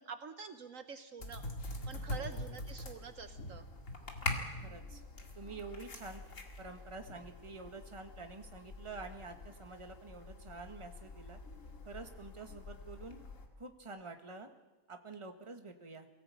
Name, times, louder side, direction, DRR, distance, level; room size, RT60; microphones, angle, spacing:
voice 1, 0.0-1.4 1.9-3.6, right 5 dB, 65° right, 9 dB, 1.3 m, -47 dB
sound 1, 1.2-13.5, left 2 dB, 60° left, 2.6 m, -44 dB
voice 2, 2.1-2.5 4.6-5.0 5.3-6.2 6.6-11.4 11.8-13.2 13.6-14.5 14.9-16.1, right 3 dB, 20° right, 6 dB, 1.5 m, -48 dB
22.5 x 17.0 x 8.5 m, 1.1 s
omnidirectional pair, 1.6 m